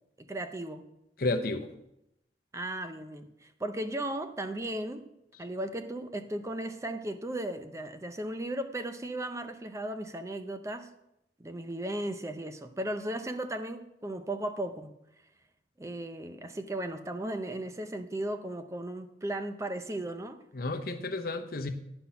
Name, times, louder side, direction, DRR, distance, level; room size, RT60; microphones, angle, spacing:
voice 1, 0.2-0.8 2.5-5.1 5.4-10.9 11.4-14.9 15.8-20.4, right 1 dB, 15° right, 8 dB, 0.5 m, -36 dB
voice 2, 1.2-1.7 20.5-21.7, left 2 dB, 55° left, 7 dB, 0.8 m, -31 dB
9.9 x 5.9 x 5.8 m, 0.84 s
head